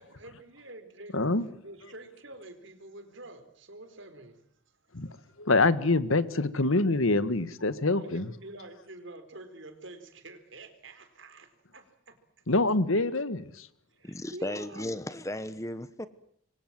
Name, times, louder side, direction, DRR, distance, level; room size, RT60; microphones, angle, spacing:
voice 1, 0.0-1.2 1.6-4.6 4.9-5.3 6.5-6.7 7.8-12.4 12.9-13.1 13.9-15.0, right 2 dB, 60° right, 4.4 m, -48 dB
voice 2, 1.1-1.5 4.9-5.1 5.4-8.3 12.5-13.7, left 2 dB, 70° left, 1.6 m, -25 dB
voice 3, 14.0-16.1, left 1 dB, 15° left, 1.0 m, -35 dB
27.5 x 24.0 x 7.6 m
head